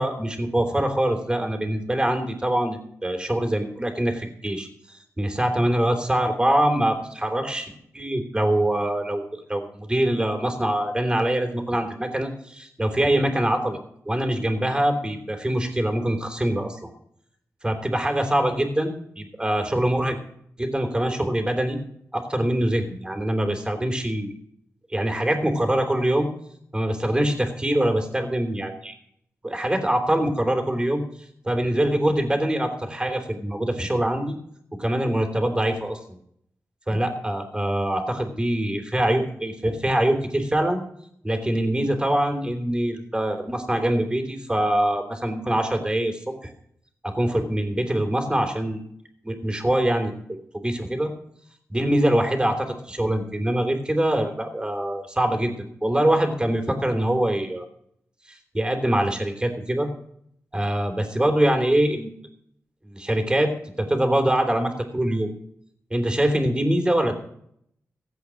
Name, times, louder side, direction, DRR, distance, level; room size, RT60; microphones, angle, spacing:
voice 1, 0.0-13.8 14.0-16.8 17.6-20.2 20.6-21.8 22.1-24.3 24.9-26.3 26.7-28.9 29.4-31.0 31.4-34.3 34.8-36.0 36.9-40.8 41.2-46.5 47.0-48.8 49.2-50.1 50.5-51.1 51.7-55.5 55.8-57.6 58.3-59.9 60.5-62.1 62.8-63.5 63.8-65.3 65.9-67.1, right 1 dB, 15° right, 4 dB, 3.3 m, -24 dB
15.5 x 8.4 x 6.3 m, 0.69 s
cardioid pair, 70°, 6 cm